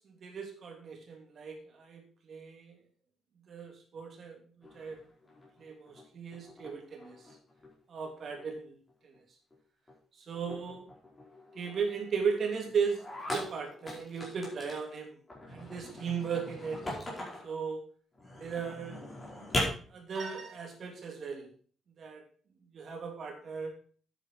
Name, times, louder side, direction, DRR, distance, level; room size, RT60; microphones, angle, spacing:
voice 1, 0.0-2.0 2.3-2.7 3.5-4.4 4.7-5.0 5.6-7.2 7.9-8.7 9.0-9.1 10.2-10.9 11.5-13.0 13.3-15.2 15.5-16.8 17.4-17.8 18.4-19.0 19.9-21.5 22.0-22.2 22.7-23.7, right 6 dB, 40° right, 3 dB, 3.1 m, -36 dB
sound 1, 4.6-6.1 6.3-7.7 8.0-8.6 8.9-9.2 9.5-9.6 9.9-10.0 10.3-14.9 15.3-17.5 18.1-19.6, left 1 dB, 15° left, 4.9 m, -41 dB
10.5 x 9.2 x 4.6 m, 0.42 s
cardioid pair, 170°, 0 cm